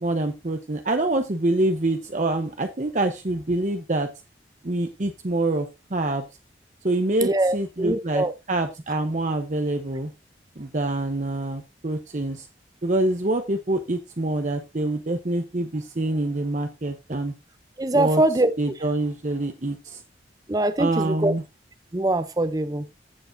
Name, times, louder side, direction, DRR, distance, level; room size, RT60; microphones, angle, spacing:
voice 1, 0.0-4.1 4.6-6.2 6.8-10.1 10.6-12.5 12.8-17.3 17.9-18.2 18.6-20.0 20.8-21.4, right 2 dB, 45° right, 0.8 m, -26 dB
voice 2, 7.2-8.3 17.8-18.5 20.5-21.3 21.9-22.8, right 2 dB, 20° right, 0.5 m, -23 dB
15.0 x 6.8 x 2.6 m
head